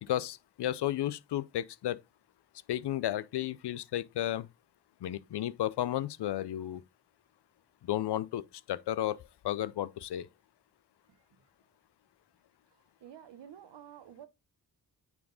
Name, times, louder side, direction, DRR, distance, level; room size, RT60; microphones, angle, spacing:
voice 1, 0.0-2.0 2.7-4.5 5.0-6.8 7.8-9.2 9.4-10.3, left 12 dB, 70° left, 0.7 m, -33 dB
voice 2, 12.7-14.3, right 10 dB, 80° right, 1.0 m, -51 dB
9.2 x 3.6 x 3.9 m
supercardioid pair, 45°, 42 cm